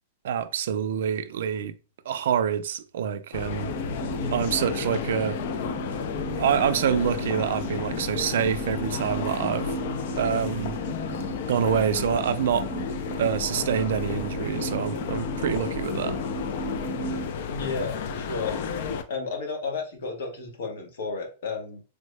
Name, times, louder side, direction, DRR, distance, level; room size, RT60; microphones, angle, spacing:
voice 1, 0.2-1.7 2.1-3.7 4.3-5.4 6.4-9.7 10.1-10.8 11.5-12.6 13.2-16.2, right 8 dB, 60° right, 0.3 m, -26 dB
sound 1, 3.3-19.0, left 6 dB, 45° left, 0.3 m, -33 dB
sound 2, 3.6-17.3, left 1 dB, 15° left, 0.7 m, -34 dB
voice 2, 17.5-18.5 19.1-21.8, left 4 dB, 60° left, 1.0 m, -32 dB
3.5 x 2.0 x 3.2 m
supercardioid pair, 175°, 0 cm